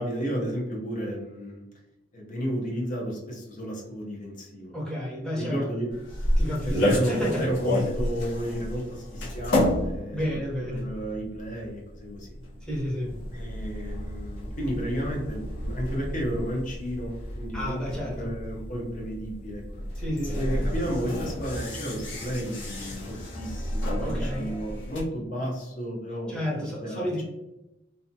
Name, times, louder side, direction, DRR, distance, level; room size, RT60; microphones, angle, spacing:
voice 1, 0.0-1.6 2.1-4.7 5.3-5.9 6.6-12.3 13.3-19.9 20.3-26.4 26.8-27.2, equal, 45° left, -2 dB, 0.7 m, -32 dB
voice 2, 4.7-5.7 6.4-7.5 10.1-10.9 12.6-13.2 17.5-18.3 20.0-20.7 24.0-24.5 26.3-27.2, equal, 5° left, -5 dB, 0.7 m, -31 dB
sound 1, 5.9-25.0, left 1 dB, 85° left, 0.7 m, -31 dB
2.7 x 2.2 x 2.7 m, 0.96 s
head